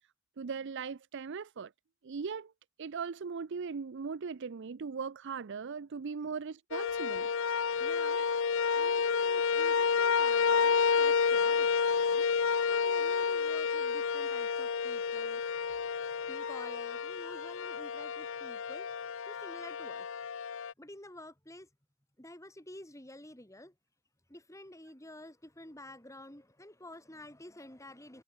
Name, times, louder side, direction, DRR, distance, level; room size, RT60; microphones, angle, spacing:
voice 1, 0.4-1.7 2.0-2.5 2.8-7.3, right 5 dB, 55° right, 0.5 m, -39 dB
sound 1, 6.7-20.7, left 6 dB, 60° left, 0.6 m, -30 dB
voice 2, 7.6-15.7 16.2-18.9 19.3-20.1 20.8-21.7 22.2-23.7 24.3-28.2, left 1 dB, 15° left, 3.4 m, -51 dB
head